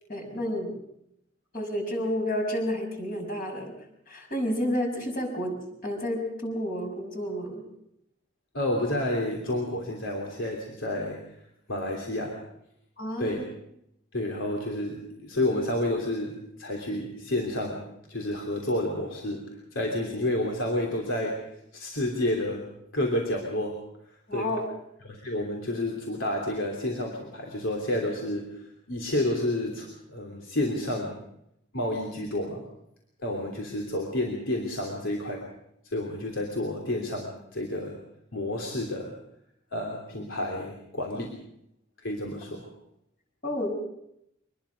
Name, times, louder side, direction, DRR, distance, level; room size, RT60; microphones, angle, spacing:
voice 1, 0.1-0.7 1.5-3.7 4.1-7.6 13.0-13.4 24.3-24.7 43.4-43.7, equal, 45° left, 2 dB, 6.0 m, -30 dB
voice 2, 8.5-11.2 11.7-12.4 13.2-13.4 14.1-19.4 19.7-21.4 21.7-22.7 22.9-23.8 24.3-24.5 25.0-31.2 31.7-32.6 33.2-35.4 35.9-38.0 38.3-39.2 39.7-41.4 42.0-42.7, left 1 dB, 80° left, 0 dB, 3.2 m, -30 dB
24.5 x 20.5 x 5.2 m, 0.78 s
head